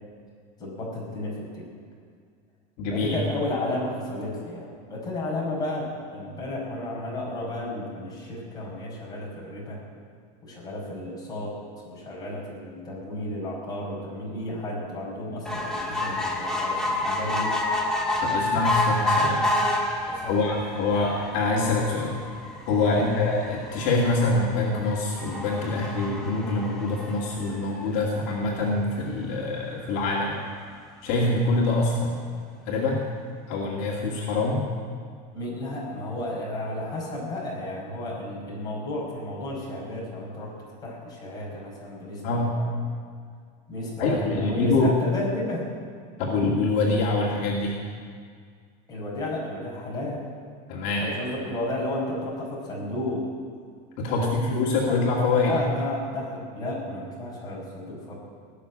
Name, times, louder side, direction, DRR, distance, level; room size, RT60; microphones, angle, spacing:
voice 1, 0.6-1.6 2.9-9.8 10.4-11.6 11.8-17.5 20.1-20.4 23.0-23.1 35.3-40.5 40.8-42.7 43.7-45.7 48.9-50.2 50.9-53.2 54.1-55.0 55.3-58.1, left 1 dB, 20° left, -5 dB, 5.5 m, -32 dB
voice 2, 2.8-3.2 18.2-19.5 20.3-22.1 22.7-30.4 31.0-32.2 32.7-33.0 33.5-34.6 42.2-42.5 44.0-44.9 46.2-47.7 50.7-51.1 54.0-54.3 54.6-55.5, left 3 dB, 65° left, -3 dB, 2.4 m, -25 dB
sound 1, 15.4-28.0 28.6-28.7 29.0-29.1 29.3-29.4, left 1 dB, 5° left, 1.7 m, -29 dB
18.5 x 6.9 x 9.8 m, 2.1 s
cardioid pair, 160°, 20 cm